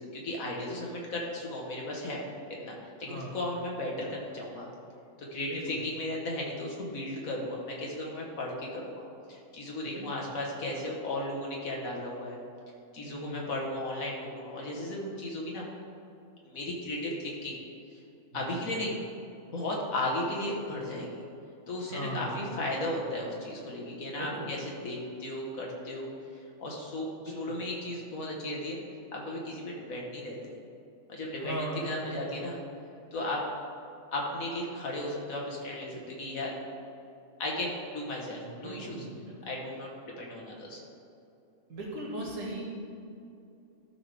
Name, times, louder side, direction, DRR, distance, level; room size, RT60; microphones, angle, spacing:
voice 1, 0.0-2.2 2.6-4.7 5.3-9.0 9.3-12.4 12.9-15.7 16.4-17.6 17.9-18.0 18.3-18.9 19.5-21.2 21.7-27.1 27.4-28.8 29.1-30.5 31.1-31.6 31.8-32.6 33.1-33.4 34.1-36.5 37.4-39.0 39.5-40.8, left 1 dB, 80° left, -2 dB, 1.8 m, -35 dB
voice 2, 5.5-5.8 9.8-10.3 13.0-13.5 18.3-18.7 21.9-22.7 24.1-24.5 27.2-27.6 31.4-32.3 38.4-39.4 41.7-42.6, right 1 dB, 65° right, -4 dB, 2.3 m, -39 dB
13.0 x 5.9 x 3.5 m, 2.7 s
omnidirectional pair, 1.4 m